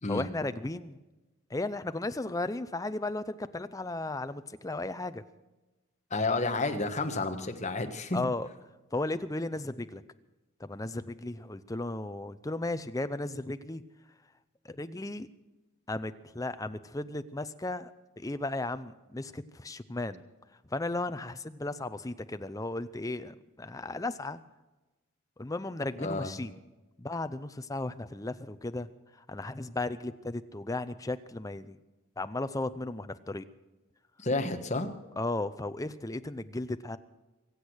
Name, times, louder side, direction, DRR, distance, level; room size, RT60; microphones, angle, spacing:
voice 1, 0.1-1.0 1.5-5.2 8.1-8.5 8.9-10.0 10.6-13.8 14.6-15.3 15.9-20.2 20.7-24.4 25.4-26.6 27.0-28.9 29.3-31.8 32.2-33.4 35.2-37.0, left 2 dB, 15° left, 11 dB, 0.6 m, -35 dB
voice 2, 6.1-8.2 26.0-26.4 34.2-34.9, left 2 dB, 30° left, 6 dB, 1.3 m, -31 dB
24.5 x 8.3 x 6.3 m, 1.1 s
head